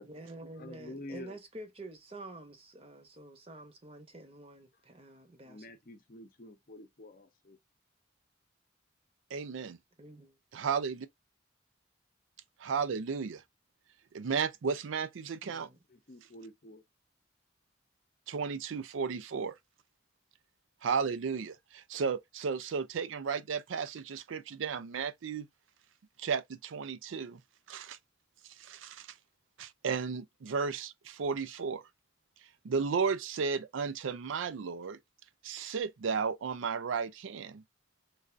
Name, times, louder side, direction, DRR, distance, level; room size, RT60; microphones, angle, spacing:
voice 1, 0.0-5.7 10.0-10.4 15.4-15.8, right 2 dB, 30° right, 0.8 m, -48 dB
voice 2, 0.6-1.4 5.4-7.6 15.9-16.8, left 1 dB, 45° left, 0.6 m, -48 dB
voice 3, 9.3-9.8 10.5-11.1 12.6-13.4 14.1-15.7 18.3-19.5 20.8-25.5 26.2-27.4 27.7-28.0 28.6-29.1 29.6-31.8 32.6-35.0 35.4-37.6, right 5 dB, 90° right, 0.4 m, -34 dB
3.3 x 2.5 x 2.4 m
head